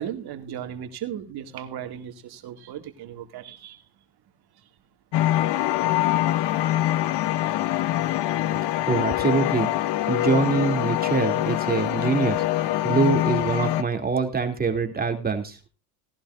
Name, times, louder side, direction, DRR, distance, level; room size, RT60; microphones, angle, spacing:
voice 1, 0.0-3.8, right 10 dB, 55° right, 2.4 m, -36 dB
sound 1, 5.1-13.8, left 14 dB, 60° left, 0.9 m, -24 dB
voice 2, 8.9-9.7 10.1-12.4 12.8-15.6, right 4 dB, 20° right, 2.8 m, -24 dB
18.5 x 11.5 x 2.6 m
supercardioid pair, 100°, 46 cm